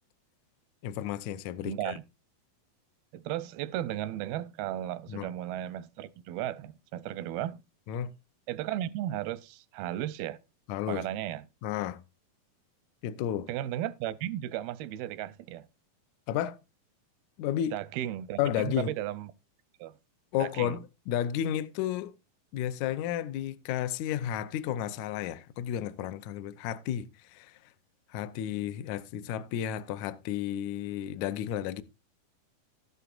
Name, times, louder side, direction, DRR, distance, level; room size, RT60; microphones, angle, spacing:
voice 1, 0.8-2.0 5.1-5.3 7.9-8.1 10.7-11.1 11.6-12.0 13.0-13.5 16.3-16.6 17.4-17.8 18.4-18.9 20.3-22.1 22.5-27.6 28.1-31.8, left 11 dB, 85° left, 1.6 m, -32 dB
voice 2, 1.6-2.0 3.1-7.6 8.5-10.4 10.9-11.5 13.5-15.7 17.7-19.3 19.8-20.0 20.4-20.8, right 13 dB, 85° right, 2.5 m, -35 dB
13.0 x 11.0 x 2.5 m
omnidirectional pair, 4.2 m